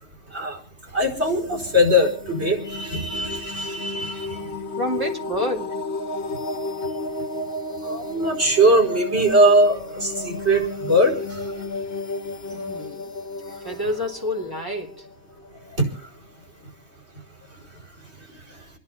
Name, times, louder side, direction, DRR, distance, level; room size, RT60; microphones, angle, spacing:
voice 1, 0.9-4.5 7.8-11.6 12.5-12.6 15.8-15.9, equal, 75° right, 5.2 m, -21 dB
sound 1, 1.2-15.8, left 2 dB, 65° left, 1.3 m, -33 dB
voice 2, 4.7-5.8 12.5-13.1 13.6-15.1, left 1 dB, 20° right, 2.8 m, -28 dB
28.5 x 11.0 x 4.2 m
omnidirectional pair, 1.1 m